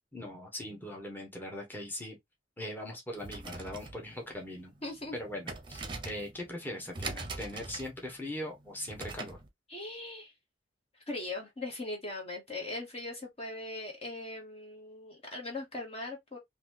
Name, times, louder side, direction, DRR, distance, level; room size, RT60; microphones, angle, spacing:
voice 1, 0.1-2.2 2.6-4.7 5.1-9.4, left 1 dB, 10° left, 1.2 m, -40 dB
sound 1, 3.1-9.5, right 3 dB, 25° right, 0.8 m, -43 dB
voice 2, 4.8-5.1 9.7-10.3 11.1-16.4, left 2 dB, 30° left, 1.1 m, -40 dB
4.0 x 2.8 x 2.9 m
head